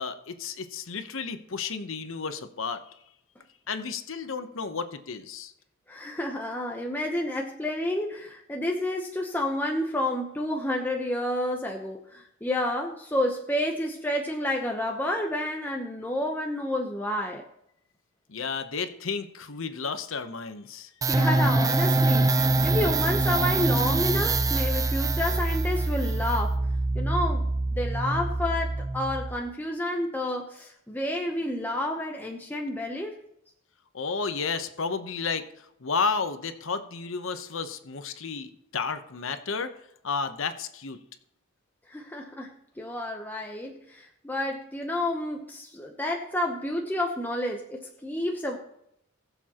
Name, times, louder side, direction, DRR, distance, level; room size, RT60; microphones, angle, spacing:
voice 1, 0.0-2.9 3.7-5.5 18.3-20.9 33.9-39.7 40.0-41.0, left 5 dB, 65° left, 9 dB, 0.9 m, -32 dB
voice 2, 5.9-17.4 21.1-26.6 26.9-33.2 41.9-48.6, left 1 dB, 10° left, 1 dB, 0.8 m, -30 dB
sound 1, 21.0-29.4, right 2 dB, 15° right, 0.4 m, -25 dB
20.0 x 7.0 x 2.9 m, 0.76 s
head